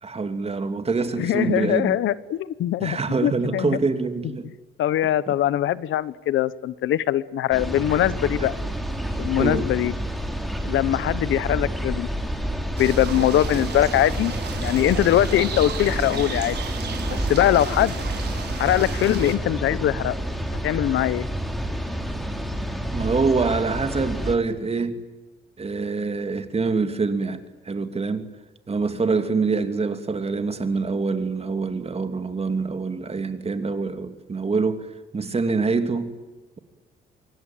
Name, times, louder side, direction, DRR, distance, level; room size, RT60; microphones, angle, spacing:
voice 1, 0.0-2.0 2.8-4.5 9.4-9.7 22.9-25.0 25.6-28.3 28.7-34.9 35.1-36.1, right 4 dB, 30° right, 3.0 m, -25 dB
voice 2, 1.2-3.7 4.8-8.6 9.2-9.9 10.6-12.1 12.8-14.3 14.6-16.6 17.1-18.0 18.6-20.2 20.6-21.2, left 12 dB, 80° left, 1.0 m, -22 dB
sound 1, 7.5-24.4, equal, ahead, 3.9 m, -29 dB
sound 2, 12.8-19.4, right 6 dB, 55° right, 5.0 m, -34 dB
25.5 x 23.5 x 9.2 m
cardioid pair, 90°, 20 cm